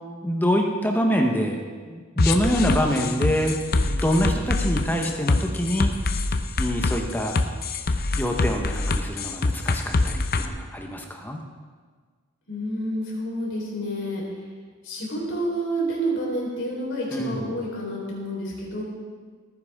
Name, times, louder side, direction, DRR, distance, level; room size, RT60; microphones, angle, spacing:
voice 1, 0.2-6.0 6.6-7.4 8.1-11.4 17.1-17.5, equal, 10° left, 2 dB, 1.1 m, -25 dB
sound 1, 2.2-10.5, left 3 dB, 45° left, 0.7 m, -24 dB
voice 2, 12.5-14.2 14.8-18.8, right 1 dB, 60° left, -4 dB, 4.4 m, -29 dB
18.5 x 9.8 x 3.7 m, 1.5 s
head